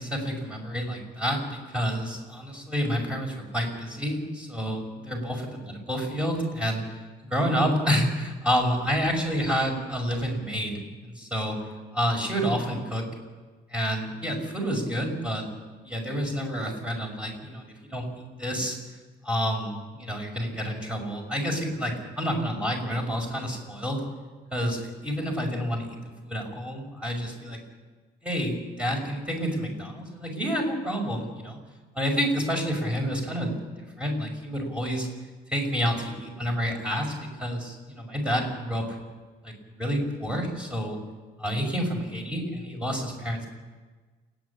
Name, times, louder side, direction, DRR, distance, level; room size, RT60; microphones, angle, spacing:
voice 1, 0.0-6.8 7.3-11.6 11.9-13.1 13.7-15.5 15.8-18.8 19.2-24.0 24.5-27.6 28.2-31.6 31.9-33.5 34.0-35.1 35.5-37.1 37.4-38.9 39.4-41.0 41.4-43.5, equal, 5° right, 1 dB, 6.0 m, -29 dB
29.0 x 10.5 x 8.6 m, 1.3 s
cardioid pair, 110°, 17 cm